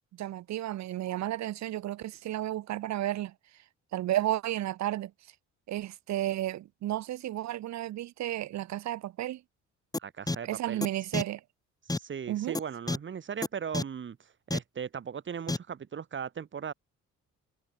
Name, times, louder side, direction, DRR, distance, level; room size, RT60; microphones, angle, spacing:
voice 1, 0.2-3.3 3.9-5.1 5.7-9.4 10.4-11.4 12.3-12.6, right 13 dB, 65° right, 0.7 m, -32 dB
sound 1, 9.9-10.0 10.3-10.4 10.8-10.9 11.1-11.2 11.9-12.0 12.5-12.6 12.9-13.0 13.4-13.5 13.7-13.8 14.5-14.6 15.5-15.6, left 2 dB, 10° left, 1.4 m, -29 dB
voice 2, 10.0-10.8 11.9-16.7, right 7 dB, 40° right, 1.5 m, -38 dB
cardioid pair, 90°, 30 cm